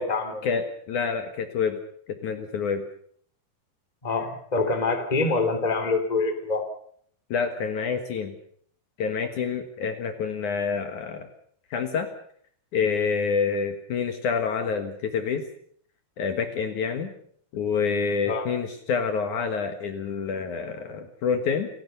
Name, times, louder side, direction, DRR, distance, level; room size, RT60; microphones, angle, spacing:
voice 1, 0.4-1.8 2.2-2.8 7.3-8.3 9.0-11.3 11.7-12.1 12.7-15.4 16.2-17.1 17.5-21.7, left 6 dB, 60° left, 7 dB, 2.7 m, -27 dB
voice 2, 4.0-6.6 18.2-18.5, left 3 dB, 10° left, 6 dB, 2.5 m, -25 dB
29.0 x 16.0 x 6.8 m, 0.62 s
omnidirectional pair, 4.3 m